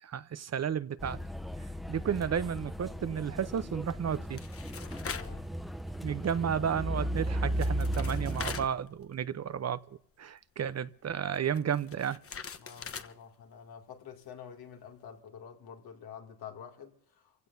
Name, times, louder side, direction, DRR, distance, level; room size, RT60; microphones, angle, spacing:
voice 1, 0.0-1.2 1.9-4.4 6.0-9.8 10.2-12.2, right 8 dB, 45° right, 0.8 m, -32 dB
sound 1, 1.0-8.7, right 1 dB, ahead, 0.7 m, -35 dB
sound 2, 3.9-5.4 5.8-6.0 7.2-7.3 7.5-9.4 9.7-9.8 11.3-13.1, left 6 dB, 35° left, 1.1 m, -42 dB
voice 2, 5.0-5.5 12.6-17.5, left 7 dB, 75° left, 2.6 m, -48 dB
27.5 x 16.5 x 2.8 m
cardioid pair, 80°, 38 cm